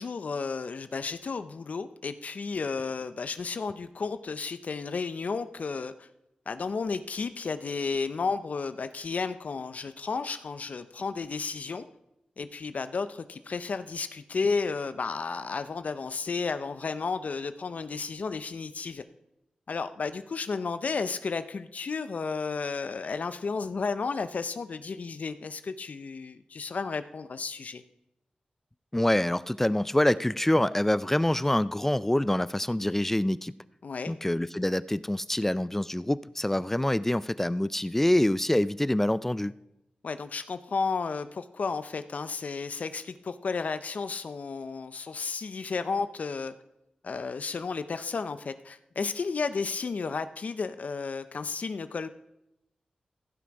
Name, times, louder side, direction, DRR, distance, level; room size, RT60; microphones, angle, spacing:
voice 1, 0.0-6.1 6.5-11.8 12.4-19.0 19.7-27.8 33.8-34.1 40.0-46.5 47.0-52.1, left 4 dB, 65° left, 12 dB, 0.5 m, -33 dB
voice 2, 28.9-33.5 34.1-39.5, left 1 dB, 10° left, 17 dB, 0.3 m, -26 dB
15.5 x 6.0 x 4.7 m, 0.87 s
cardioid pair, 70°, 3 cm